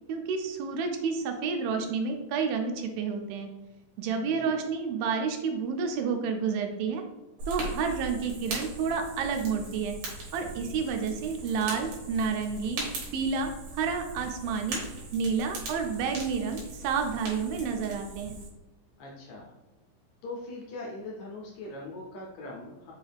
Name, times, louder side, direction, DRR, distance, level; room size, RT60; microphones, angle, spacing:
voice 1, 0.1-3.5 4.0-7.0 7.5-10.0 10.3-12.8 13.1-14.8 15.1-18.4, right 5 dB, 90° right, 4 dB, 2.4 m, -30 dB
voice 2, 4.2-4.6 19.0-19.5 20.2-22.9, left 2 dB, 75° left, -2 dB, 1.7 m, -41 dB
Fire, 7.4-18.5, right 2 dB, 70° right, 2.6 m, -40 dB
5.5 x 2.3 x 3.4 m, 1.1 s
omnidirectional pair, 4.0 m